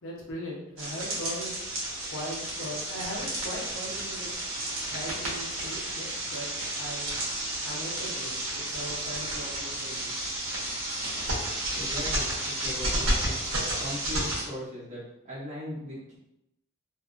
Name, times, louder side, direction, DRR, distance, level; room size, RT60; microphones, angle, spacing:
voice 1, 0.0-1.7 2.1-4.4 4.9-6.5 6.8-7.1 7.6-10.1, equal, 70° left, -4 dB, 0.9 m, -39 dB
sound 1, 0.8-14.4, right 1 dB, 85° right, 1.0 m, -32 dB
voice 2, 11.7-13.4 13.8-16.2, left 1 dB, 35° right, -10 dB, 1.1 m, -39 dB
2.7 x 2.7 x 2.4 m, 0.82 s
head